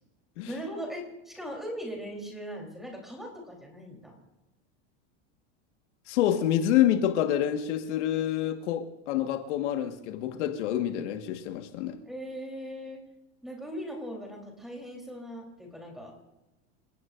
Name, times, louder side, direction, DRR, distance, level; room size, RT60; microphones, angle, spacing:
voice 1, 0.5-4.2 12.1-13.0 13.4-16.1, equal, ahead, 3.7 m, -39 dB
voice 2, 6.1-12.0, left 11 dB, 70° left, 1.7 m, -27 dB
28.5 x 17.5 x 2.6 m
supercardioid pair, 170°, 36 cm